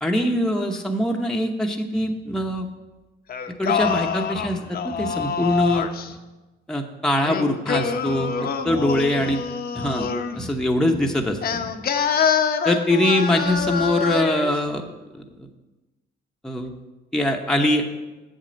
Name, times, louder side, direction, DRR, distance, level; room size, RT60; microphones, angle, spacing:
voice 1, 0.0-2.7 3.6-5.9 6.7-9.4 9.7-10.1 10.3-11.7 12.6-14.9 16.4-16.7 17.1-17.8, left 1 dB, 5° left, 2 dB, 0.8 m, -23 dB
Singing, 3.3-6.1 7.2-10.4 11.4-14.5, left 6 dB, 50° left, 0.7 m, -25 dB
7.5 x 7.5 x 5.2 m, 1.1 s
cardioid pair, 90°, 20 cm